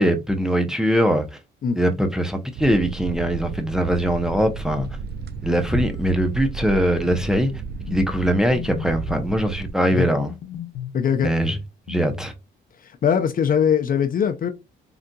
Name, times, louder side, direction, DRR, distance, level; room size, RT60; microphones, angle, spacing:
voice 1, 0.0-1.4 1.8-4.9 5.4-7.6 7.9-10.3 11.2-11.6 11.9-12.3, equal, 5° right, 0.6 m, -21 dB
sound 1, 2.6-9.7, right 4 dB, 55° right, 0.4 m, -33 dB
sound 2, 7.2-7.5 7.9-8.0 8.5-9.3 10.2-11.0 11.4-12.4, left 3 dB, 85° left, 0.7 m, -33 dB
voice 2, 10.9-11.3 12.8-14.5, left 7 dB, 45° left, 0.5 m, -21 dB
3.8 x 2.5 x 2.2 m
cardioid pair, 90°, 20 cm